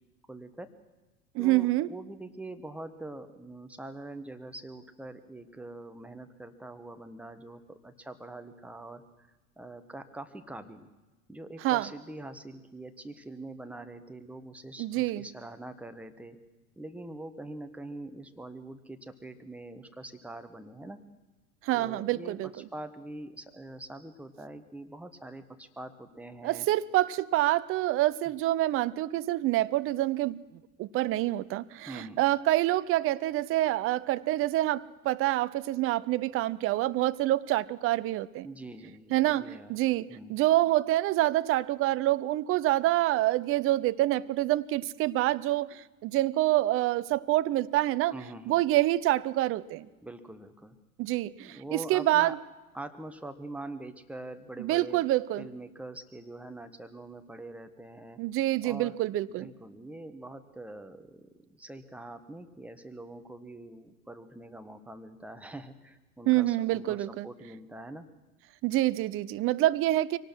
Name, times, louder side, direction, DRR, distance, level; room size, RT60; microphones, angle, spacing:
voice 1, 0.3-0.7 1.4-9.0 9.6-10.9 11.3-16.4 16.8-21.0 21.7-26.7 31.9-32.2 38.4-39.7 40.1-40.3 48.1-48.6 50.0-50.8 51.4-52.3 52.7-55.0 55.4-58.2 58.6-59.0 59.3-68.1, right 2 dB, 5° right, 7 dB, 1.4 m, -44 dB
voice 2, 1.3-1.9 11.6-11.9 14.8-15.3 21.6-22.5 26.4-30.4 30.8-38.5 39.1-48.1 48.5-49.9 51.0-52.4 54.6-55.5 58.2-59.5 66.3-67.3 68.6-70.2, right 16 dB, 30° right, 16 dB, 0.6 m, -27 dB
23.5 x 18.5 x 6.2 m, 1.1 s
figure-of-eight pair, 80°, 45 cm